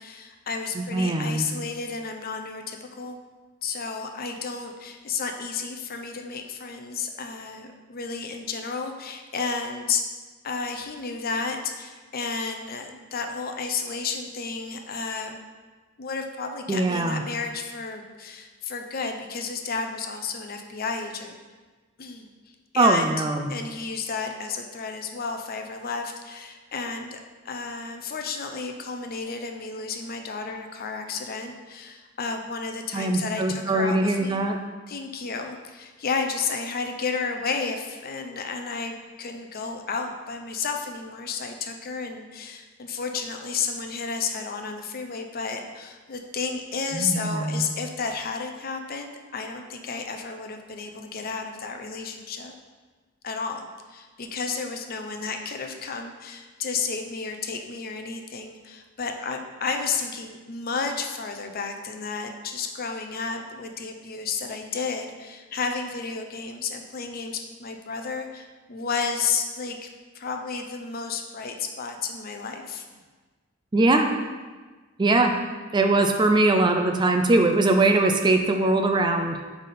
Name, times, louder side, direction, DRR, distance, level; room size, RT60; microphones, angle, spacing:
voice 1, 0.0-3.2 3.6-10.0 10.4-15.4 16.0-21.3 22.0-22.3 22.7-27.2 27.4-34.4 34.9-52.5 53.2-69.9 70.1-73.0, left 5 dB, 45° left, 5 dB, 0.6 m, -32 dB
voice 2, 0.8-1.5 16.7-17.2 22.8-23.5 32.9-34.6 46.9-47.7 73.7-74.1 75.0-75.3 75.7-79.4, right 2 dB, 20° right, 5 dB, 0.4 m, -21 dB
7.5 x 3.5 x 4.2 m, 1.3 s
head